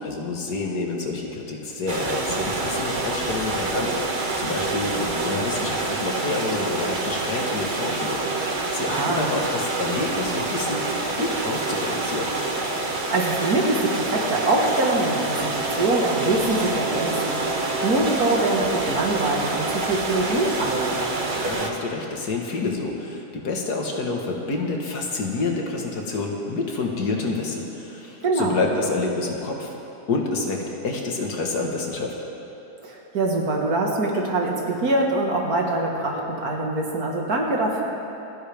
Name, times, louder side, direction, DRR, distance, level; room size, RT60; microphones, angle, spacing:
voice 1, 0.0-8.3 8.7-10.9 11.2-12.3 21.3-29.7 30.1-32.2, left 3 dB, 70° left, 0 dB, 2.0 m, -28 dB
sound 1, 1.9-21.7, right 2 dB, 35° right, 1.1 m, -27 dB
voice 2, 8.9-9.3 12.9-21.1 28.2-28.6 32.8-37.8, right 2 dB, 65° right, -1 dB, 2.2 m, -24 dB
sound 2, 15.1-21.8, right 2 dB, ahead, 2.9 m, -36 dB
28.0 x 10.5 x 3.5 m, 2.9 s
omnidirectional pair, 1.7 m